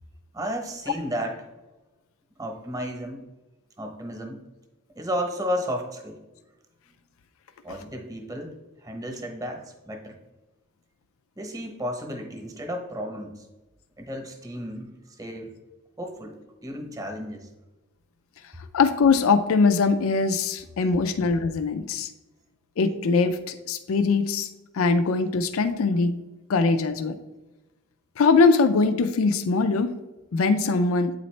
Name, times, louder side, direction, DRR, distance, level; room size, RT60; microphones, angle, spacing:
voice 1, 0.3-1.5 2.4-3.2 3.8-4.4 5.0-6.2 7.6-8.5 8.8-10.2 11.4-13.5 14.0-14.9 15.2-15.5 16.0-16.3 16.6-17.5, equal, 15° right, 3 dB, 0.9 m, -33 dB
voice 2, 18.7-22.1 22.8-24.5 24.7-26.1 26.5-27.1 28.2-29.9 30.3-31.1, left 4 dB, 80° left, 10 dB, 0.4 m, -21 dB
8.7 x 4.0 x 3.2 m, 1.1 s
head